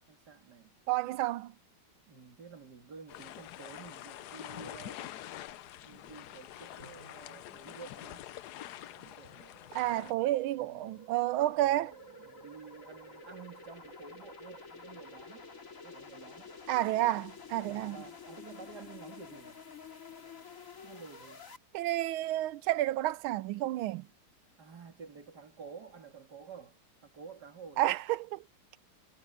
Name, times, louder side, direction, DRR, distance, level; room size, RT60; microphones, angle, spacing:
voice 1, 0.0-0.7 2.1-5.1 5.8-8.2 8.9-9.6 10.6-11.0 11.4-15.5 15.8-16.5 17.6-19.6 20.8-21.5 24.6-27.9, right 6 dB, 50° right, 3.1 m, -51 dB
voice 2, 0.9-1.5 9.7-11.9 16.7-18.0 21.7-24.1 27.8-28.4, right 15 dB, 80° right, 1.4 m, -30 dB
sound 1, 3.1-10.1, left 13 dB, 70° left, 0.9 m, -46 dB
sound 2, 6.8-21.6, left 4 dB, 40° left, 2.5 m, -51 dB
omnidirectional pair, 2.3 m